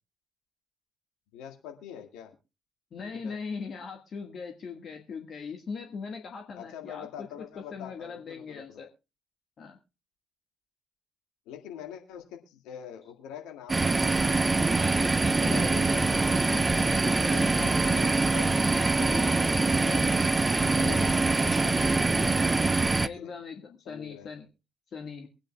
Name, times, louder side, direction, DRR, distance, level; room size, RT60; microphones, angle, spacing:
voice 1, 1.3-2.3 3.0-3.4 6.5-8.8 11.5-14.7 15.0-18.6 18.9-20.1 20.7-23.3 23.9-24.3, left 9 dB, 65° left, 3 dB, 1.9 m, -44 dB
voice 2, 2.9-8.9 9.6-9.8 14.7-17.7 18.7-19.7 20.5-21.5 22.8-24.4 24.9-25.3, left 5 dB, 45° left, 4 dB, 1.5 m, -41 dB
sound 1, 13.7-23.1, right 3 dB, 25° right, 0.6 m, -24 dB
23.5 x 9.0 x 2.2 m, 0.30 s
figure-of-eight pair, 45°, 0 cm